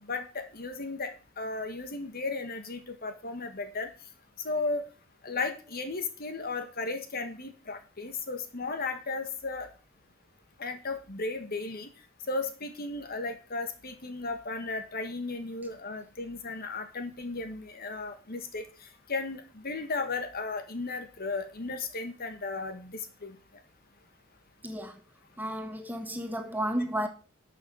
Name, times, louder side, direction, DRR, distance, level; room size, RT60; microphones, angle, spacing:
voice 1, 0.1-3.9 4.4-4.8 5.2-9.7 10.6-11.9 12.3-23.4, left 3 dB, 45° left, 1.6 m, -35 dB
voice 2, 24.6-24.9 25.4-27.1, equal, 10° right, 1.6 m, -32 dB
12.5 x 6.7 x 5.6 m
head